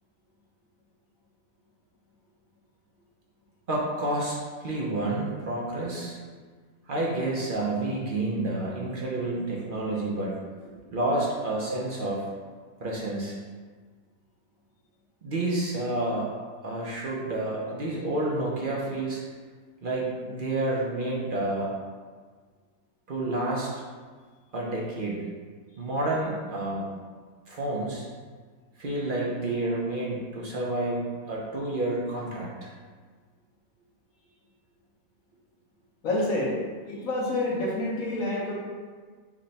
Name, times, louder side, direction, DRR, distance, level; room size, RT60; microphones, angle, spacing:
voice 1, 3.7-6.2 6.9-12.3 12.8-13.4 15.2-19.2 19.8-21.7 23.1-23.7 24.5-25.3 25.8-26.9 27.5-28.1 28.8-32.7, right 2 dB, 55° right, -4 dB, 0.6 m, -29 dB
voice 2, 36.0-36.6 36.9-38.5, left 2 dB, 60° left, -4 dB, 1.2 m, -28 dB
5.8 x 2.2 x 4.0 m, 1.5 s
omnidirectional pair, 1.7 m